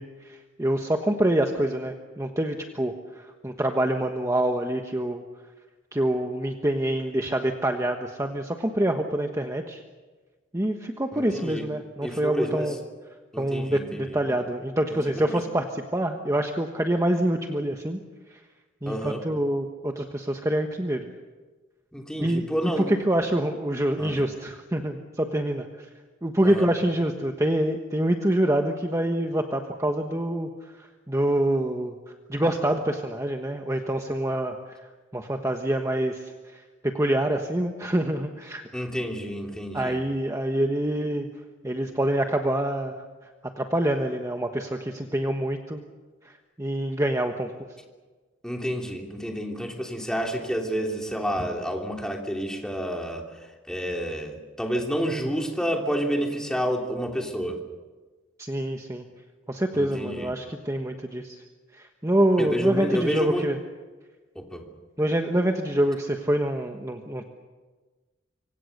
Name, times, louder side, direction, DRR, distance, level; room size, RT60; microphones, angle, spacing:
voice 1, 0.0-5.2 5.9-9.8 10.5-12.7 13.4-18.0 18.8-21.1 22.2-25.9 26.2-30.5 30.8-31.9 32.3-34.8 35.1-38.6 39.7-41.3 41.6-42.9 43.6-45.8 46.2-47.5 58.4-59.0 59.5-61.4 61.7-63.6 65.0-67.3, right 1 dB, 15° right, 4 dB, 1.3 m, -26 dB
voice 2, 11.1-11.6 12.0-12.7 13.3-14.3 15.3-15.4 18.9-19.2 21.9-23.0 24.0-24.2 26.4-26.7 38.7-39.9 48.4-53.2 53.7-57.6 59.7-60.3 62.4-63.4 64.3-64.6, equal, 5° left, 1 dB, 3.1 m, -29 dB
25.5 x 25.5 x 6.7 m, 1.3 s
head